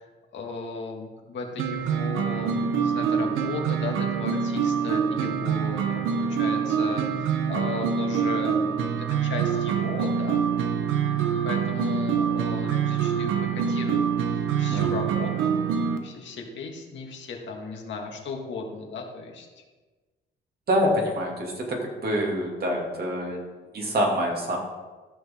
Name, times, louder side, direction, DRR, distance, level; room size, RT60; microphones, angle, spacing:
voice 1, 0.0-10.4 11.4-15.6 16.0-19.6, left 4 dB, 65° left, 1 dB, 1.9 m, -36 dB
sound 1, 1.6-16.0, right 7 dB, 85° right, 0.9 m, -25 dB
voice 2, 20.7-23.4 23.7-24.6, equal, 50° right, -1 dB, 2.5 m, -26 dB
13.5 x 6.3 x 3.7 m, 1.3 s
cardioid pair, 90°, 20 cm